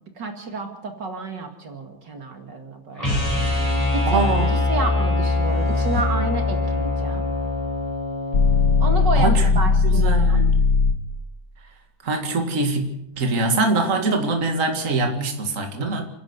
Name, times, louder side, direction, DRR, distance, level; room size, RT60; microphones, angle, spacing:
voice 1, 0.2-3.2 3.9-4.2 4.7-7.3 8.8-10.5, right 3 dB, 60° right, 4 dB, 2.8 m, -30 dB
sound 1, 3.0-9.1, left 2 dB, 15° left, 7.8 m, -23 dB
voice 2, 4.1-4.6 9.2-10.6 12.0-12.9 13.2-16.1, right 3 dB, 40° right, 3 dB, 2.5 m, -23 dB
sound 2, 8.3-11.1, left 4 dB, 50° left, 1.4 m, -18 dB
29.5 x 11.0 x 8.1 m, 0.84 s
omnidirectional pair, 2.1 m